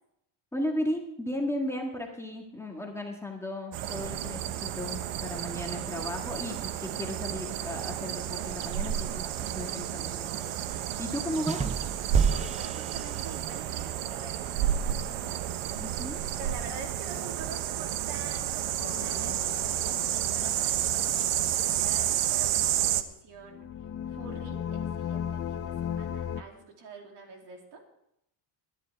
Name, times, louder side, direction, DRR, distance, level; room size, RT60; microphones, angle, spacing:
voice 1, 0.5-9.3 9.5-11.7 15.8-16.2, left 1 dB, 5° left, 0 dB, 1.7 m, -35 dB
sound 1, 3.7-23.0, right 11 dB, 80° right, 1.1 m, -31 dB
sound 2, 11.5-13.7, right 6 dB, 15° right, 0.6 m, -29 dB
voice 2, 12.3-15.8 16.3-23.7 24.0-27.8, right 3 dB, 60° right, 2 dB, 3.1 m, -46 dB
sound 3, 18.8-21.6 23.4-26.4, left 8 dB, 30° left, 0.6 m, -37 dB
20.5 x 11.0 x 3.5 m, 0.79 s
cardioid pair, 135°, 48 cm